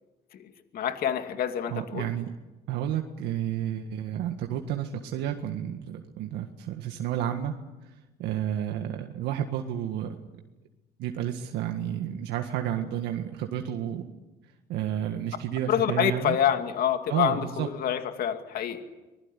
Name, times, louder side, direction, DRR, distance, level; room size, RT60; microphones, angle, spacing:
voice 1, 0.7-2.1 15.7-18.8, left 9 dB, 65° left, 7 dB, 2.4 m, -27 dB
voice 2, 1.7-2.3 2.7-7.5 8.2-10.2 11.0-14.1 14.7-16.4 17.1-17.7, right 10 dB, 85° right, 4 dB, 1.8 m, -31 dB
25.0 x 20.5 x 10.0 m, 1.1 s
cardioid pair, 110°, 17 cm